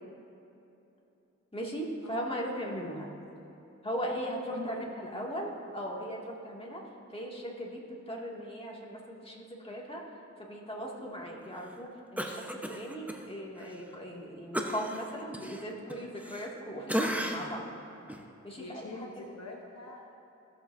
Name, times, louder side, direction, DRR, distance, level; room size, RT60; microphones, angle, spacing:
voice 1, 1.5-3.1 3.8-6.8 7.1-7.8 8.1-10.0 10.4-17.7 18.4-18.8 19.2-19.3, equal, 20° left, -3 dB, 2.2 m, -38 dB
voice 2, 2.0-3.0 4.5-5.3 18.6-20.1, left 2 dB, 60° left, 0 dB, 1.0 m, -46 dB
Cough, 12.2-13.2 13.6-13.7 14.5-16.6 16.9-17.6 18.1-18.2, equal, 5° right, 0.9 m, -34 dB
16.0 x 7.1 x 2.7 m, 3.0 s
cardioid pair, 45°, 29 cm